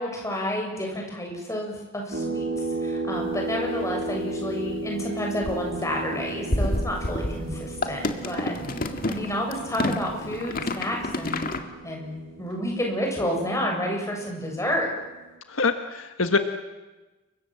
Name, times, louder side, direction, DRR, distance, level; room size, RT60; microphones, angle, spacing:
voice 1, 0.0-2.4 2.8-8.5 9.1-14.9, equal, 15° left, 0 dB, 7.3 m, -30 dB
sound 1, 2.1-15.2, right 2 dB, 60° right, 5.1 m, -35 dB
sound 2, 3.1-3.2 3.8-3.9 4.1-4.4 4.6-4.8 5.2-11.6, left 1 dB, 45° left, 2.1 m, -29 dB
voice 2, 15.5-16.4, left 4 dB, 70° left, 7 dB, 1.5 m, -24 dB
29.5 x 24.0 x 7.7 m, 1.1 s
head